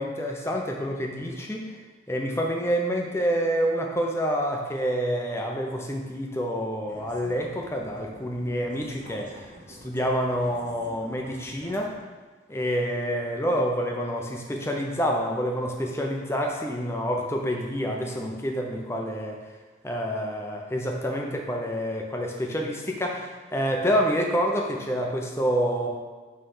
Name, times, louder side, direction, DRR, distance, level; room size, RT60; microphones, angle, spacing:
voice 1, 0.0-1.7 2.1-11.9 12.5-19.4 19.8-25.9, equal, 15° left, 0 dB, 0.6 m, -28 dB
sound 1, 6.8-12.0, right 1 dB, 40° right, 0.8 m, -48 dB
5.5 x 3.3 x 5.5 m, 1.4 s
head